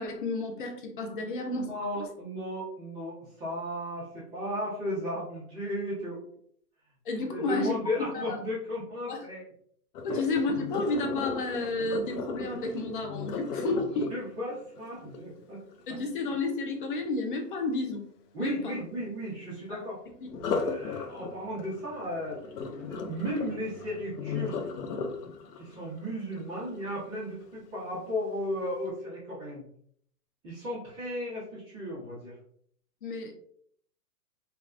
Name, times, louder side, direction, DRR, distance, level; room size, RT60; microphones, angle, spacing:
voice 1, 0.0-1.7 2.0-2.1 7.1-7.8 8.1-8.4 9.1-9.2 10.0-14.1 15.9-18.0 18.4-18.8 19.7-19.8 33.0-33.3, left 3 dB, 35° left, 3 dB, 0.4 m, -31 dB
voice 2, 1.2-6.2 7.2-9.4 10.1-10.2 13.6-15.6 18.3-20.0 20.5-22.4 22.7-24.5 25.5-29.7 30.4-32.4, equal, 10° right, -8 dB, 0.6 m, -35 dB
Sink (filling or washing), 9.9-15.9 20.3-27.3 27.8-28.2 28.6-28.7, left 5 dB, 75° left, 0.7 m, -36 dB
3.3 x 2.3 x 2.4 m, 0.63 s
hypercardioid pair, 150°, 47 cm